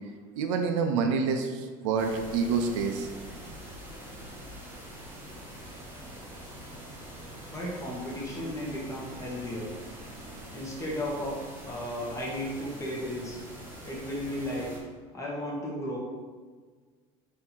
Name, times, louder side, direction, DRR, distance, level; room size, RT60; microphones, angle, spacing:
voice 1, 0.4-3.1, right 5 dB, 80° right, 4 dB, 0.5 m, -27 dB
sound 1, 2.0-14.8, right 1 dB, 15° right, 1.2 m, -44 dB
voice 2, 7.4-9.7 10.5-11.3 11.6-13.4 13.8-14.7 15.1-16.0, left 1 dB, 20° left, -4 dB, 1.3 m, -34 dB
3.5 x 2.8 x 4.4 m, 1.5 s
supercardioid pair, 100°, 16 cm